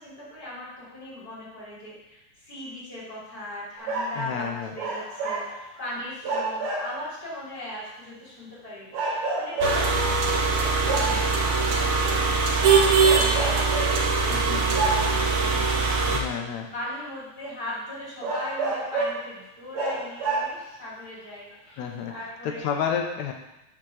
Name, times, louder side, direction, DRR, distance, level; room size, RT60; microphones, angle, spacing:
voice 1, 0.0-16.2 16.7-22.6, equal, 30° left, -8 dB, 3.1 m, -39 dB
sound 1, 3.8-4.3 4.8-5.9 6.2-7.1 7.8-7.9 8.9-10.1 10.9-11.3 12.4-12.6 13.0-14.1 14.7-15.4 16.2-16.3 17.0-17.1 17.5-17.6 18.2-19.3 19.7-20.8 21.5-21.6, right 3 dB, 65° right, 2.6 m, -29 dB
voice 2, 4.1-4.8 14.3-14.8 16.1-16.7 21.8-23.3, left 7 dB, 75° left, 3 dB, 2.0 m, -31 dB
sound 2, 9.6-16.2, right 4 dB, 90° right, 1.1 m, -22 dB
7.3 x 3.8 x 6.2 m, 0.92 s
omnidirectional pair, 3.5 m